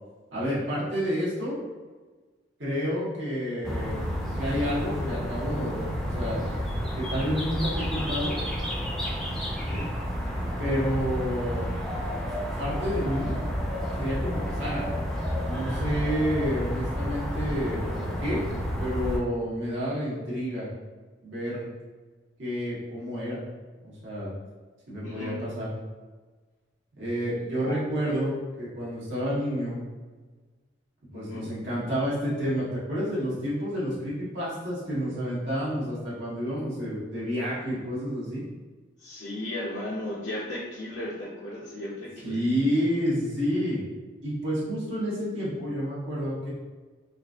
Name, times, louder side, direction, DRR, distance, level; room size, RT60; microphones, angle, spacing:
voice 1, 0.3-1.6 2.6-4.0 4.4-6.4 6.9-8.3 10.6-11.7 12.6-13.3 13.9-18.5 18.8-20.7 21.2-21.7 22.4-23.4 23.8-24.3 24.9-25.7 27.0-29.8 31.1-38.4 42.2-43.8 44.2-46.5, equal, 75° right, -8 dB, 1.4 m, -29 dB
sound 1, 3.6-19.2, equal, ahead, 0.6 m, -31 dB
voice 2, 9.6-9.9 25.0-25.4 27.6-28.2 31.1-31.4 39.0-42.4, left 1 dB, 70° left, -7 dB, 0.7 m, -36 dB
4.9 x 2.6 x 2.4 m, 1.3 s
head